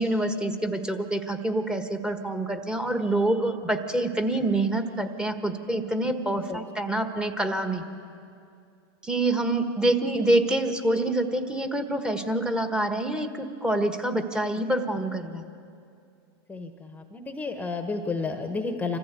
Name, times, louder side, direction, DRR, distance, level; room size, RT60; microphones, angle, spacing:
voice 1, 0.0-7.8 9.0-15.4, right 1 dB, 5° right, 6 dB, 1.4 m, -26 dB
voice 2, 16.5-19.0, left 4 dB, 10° left, 6 dB, 1.2 m, -31 dB
25.5 x 14.5 x 8.3 m, 2.4 s
hypercardioid pair, 120°, 14 cm